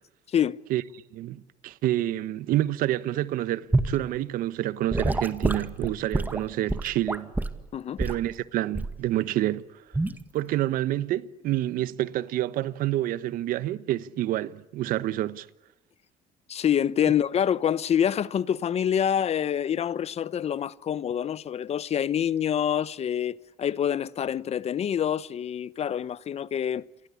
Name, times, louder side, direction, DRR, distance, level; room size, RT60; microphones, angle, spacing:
voice 1, 1.1-7.3 8.0-9.6 10.3-15.5, right 14 dB, 70° right, 1.2 m, -28 dB
Gurgling / Sink (filling or washing) / Liquid, 3.7-4.0 4.9-7.6 8.0-8.2 8.7-9.0 9.9-10.2, right 2 dB, 10° right, 1.8 m, -27 dB
voice 2, 16.5-26.8, left 9 dB, 45° left, 0.9 m, -26 dB
28.5 x 24.0 x 8.5 m
cardioid pair, 95°, 15 cm